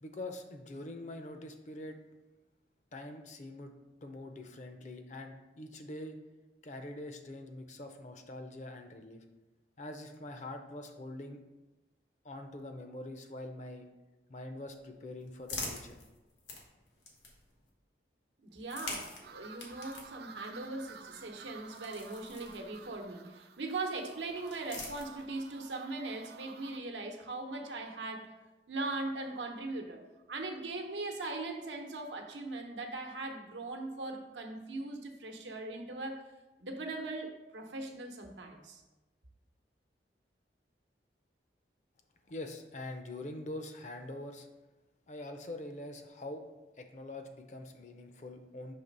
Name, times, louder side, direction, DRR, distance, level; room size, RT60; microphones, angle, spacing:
voice 1, 0.0-2.0 2.9-3.7 4.0-6.2 6.6-9.2 9.8-11.4 12.2-13.9 14.3-16.0 42.3-44.5 45.1-46.4 46.8-48.7, left 1 dB, 40° left, 5 dB, 0.5 m, -44 dB
sound 1, 14.6-17.7 18.5-23.1 24.1-25.6, left 3 dB, 90° left, 1.3 m, -46 dB
voice 2, 18.4-28.3 28.7-30.0 30.3-36.2 36.6-38.8, right 2 dB, 90° right, 3 dB, 0.9 m, -40 dB
sound 2, 19.2-26.8, right 6 dB, 60° right, 0.3 m, -53 dB
5.9 x 3.3 x 5.2 m, 1.1 s
head